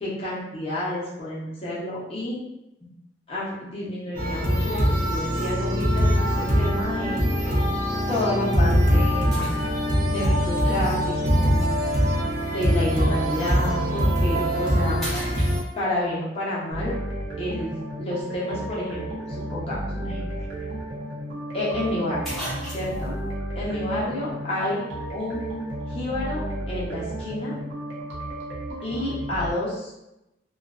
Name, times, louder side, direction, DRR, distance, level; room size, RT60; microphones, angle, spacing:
voice 1, 0.0-2.4 2.8-2.9 3.3-7.2 8.1-9.6 10.0-11.7 12.4-15.0 15.8-16.9 17.4-20.2 21.5-22.2 22.7-23.1 23.5-24.8 25.1-25.6 25.9-27.6 28.8-29.9, left 1 dB, 35° left, -7 dB, 0.8 m, -29 dB
sound 1, 4.1-15.6, equal, 45° right, 0.7 m, -22 dB
sound 2, 6.8-7.1 7.8-7.9 9.3-10.1 11.6-11.7 13.9-14.1 14.5-14.7 15.0-16.1 20.2-20.3 20.6-20.7 21.8-21.9 22.2-23.1, equal, ahead, 0.9 m, -36 dB
sound 3, 16.7-29.5, right 1 dB, 80° right, 0.8 m, -33 dB
2.5 x 2.3 x 2.4 m, 0.91 s
head